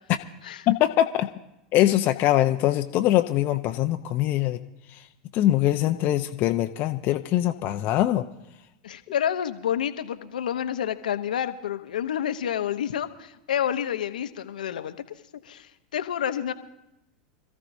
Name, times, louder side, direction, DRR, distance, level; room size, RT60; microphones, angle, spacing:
voice 1, 0.7-1.3 1.7-4.6 4.9-5.0 5.3-8.2, left 14 dB, 45° left, 6 dB, 0.7 m, -22 dB
voice 2, 8.8-15.0 15.4-16.5, left 9 dB, 80° left, 10 dB, 0.9 m, -29 dB
26.0 x 14.5 x 2.7 m, 0.88 s
hypercardioid pair, 90°, 4 cm